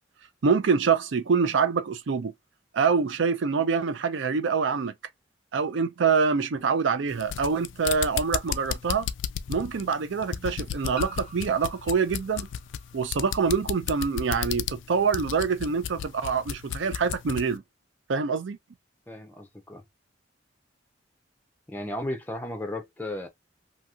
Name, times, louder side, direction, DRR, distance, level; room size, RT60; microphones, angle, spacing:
voice 1, 0.4-2.3 2.7-4.9 5.5-9.1 9.5-12.5 12.9-17.6 18.1-18.6, right 5 dB, 75° right, 0.5 m, -25 dB
sound 1, 7.0-7.1 8.7-8.8 10.9-13.4, equal, 10° right, 1.0 m, -46 dB
sound 2, 7.1-17.5, left 9 dB, 80° left, 0.3 m, -33 dB
voice 2, 19.1-19.8 21.7-23.3, left 1 dB, 10° left, 0.4 m, -34 dB
2.8 x 2.7 x 2.3 m
head